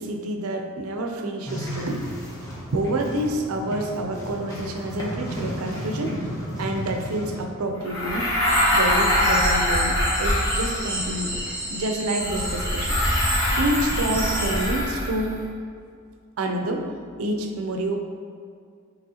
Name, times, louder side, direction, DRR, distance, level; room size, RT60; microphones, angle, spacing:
voice 1, 0.0-2.1 2.7-6.3 6.6-11.4 11.7-12.9 13.6-15.4 16.4-16.9 17.2-18.0, right 1 dB, 85° right, 3 dB, 0.5 m, -28 dB
sound 1, 1.4-7.4, equal, 15° left, 0.9 m, -33 dB
sound 2, 7.8-11.1 12.2-15.3, left 1 dB, 65° left, 1.2 m, -23 dB
sound 3, 8.4-14.7, right 1 dB, 20° right, 1.2 m, -31 dB
6.1 x 3.0 x 2.8 m, 2.2 s
head